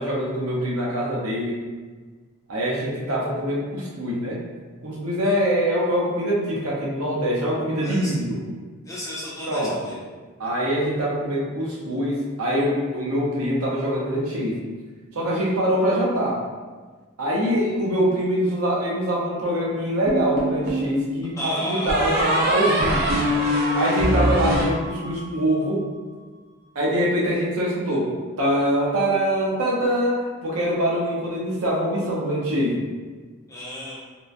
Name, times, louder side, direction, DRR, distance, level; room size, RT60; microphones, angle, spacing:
voice 1, 0.0-1.6 2.5-4.4 4.8-8.4 9.4-10.0 10.4-14.6 15.1-16.4 17.2-23.2 23.7-25.8 26.7-28.1 28.4-32.8, equal, 85° right, -4 dB, 0.7 m, -24 dB
voice 2, 7.8-8.2 8.8-10.0 17.6-17.7 21.4-21.9 33.5-34.0, equal, 15° left, -7 dB, 0.5 m, -33 dB
sound 1, 20.1-20.9 21.9-25.4, equal, 45° right, 0.5 m, -23 dB
3.0 x 2.1 x 2.4 m, 1.4 s
head